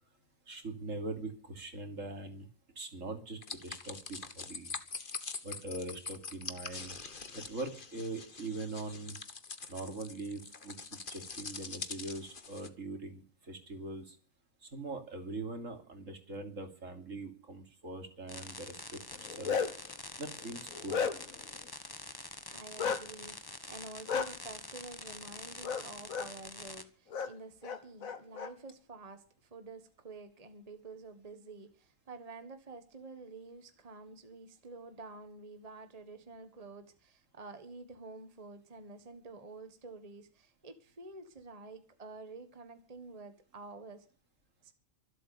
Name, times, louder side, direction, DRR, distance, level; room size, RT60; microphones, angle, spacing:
voice 1, 0.5-2.5 2.8-4.7 5.4-6.9 7.3-9.2 9.7-10.7 11.1-14.2 14.6-19.6 20.2-21.0, right 2 dB, 65° right, 5 dB, 3.3 m, -42 dB
sound 1, 3.4-12.7, left 4 dB, 40° left, 1.5 m, -44 dB
sound 2, 18.3-26.8, left 2 dB, 15° left, 1.4 m, -46 dB
Bark, 19.1-19.9 20.4-21.4 22.8-23.0 24.1-24.3 25.6-25.8 26.1-26.3 27.1-27.3 27.6-28.5, left 6 dB, 75° left, 1.8 m, -33 dB
voice 2, 22.5-44.1 44.6-44.7, right 3 dB, 25° right, 8 dB, 1.6 m, -49 dB
24.5 x 8.3 x 6.8 m, 0.41 s
omnidirectional pair, 1.4 m